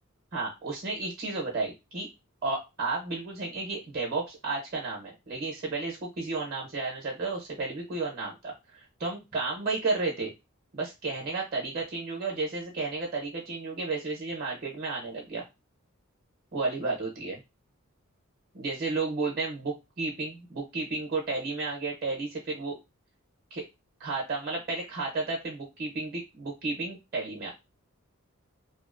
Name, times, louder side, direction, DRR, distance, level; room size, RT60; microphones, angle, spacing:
voice 1, 0.3-2.1 2.4-10.3 10.7-15.4 16.5-17.4 18.5-22.8 23.5-23.7 24.0-27.5, right 3 dB, 45° right, -2 dB, 0.8 m, -32 dB
2.7 x 2.0 x 2.4 m, 0.23 s
head